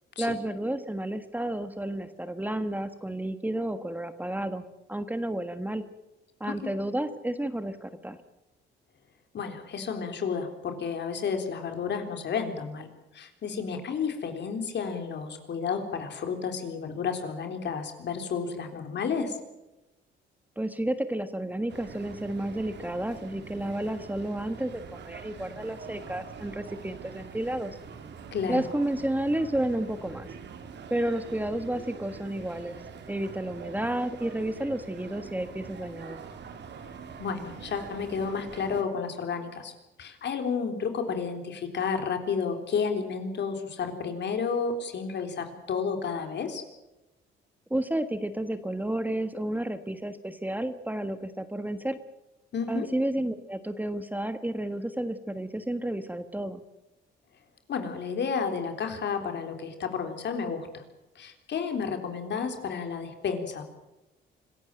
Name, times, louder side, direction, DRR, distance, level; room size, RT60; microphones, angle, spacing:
voice 1, 0.2-5.8 6.4-8.2 20.6-27.8 28.5-30.3 30.9-32.8 33.1-36.2 47.7-52.0 52.7-56.6, right 1 dB, 10° right, 10 dB, 1.4 m, -31 dB
voice 2, 9.3-12.9 13.1-19.4 28.3-28.6 37.2-39.7 40.0-46.6 52.5-52.9 57.7-60.8 61.2-63.6, left 6 dB, 60° left, 6 dB, 3.7 m, -31 dB
sound 1, 21.7-38.8, right 6 dB, 60° right, 2.7 m, -44 dB
25.5 x 15.0 x 9.1 m, 1.0 s
cardioid pair, 90°, 20 cm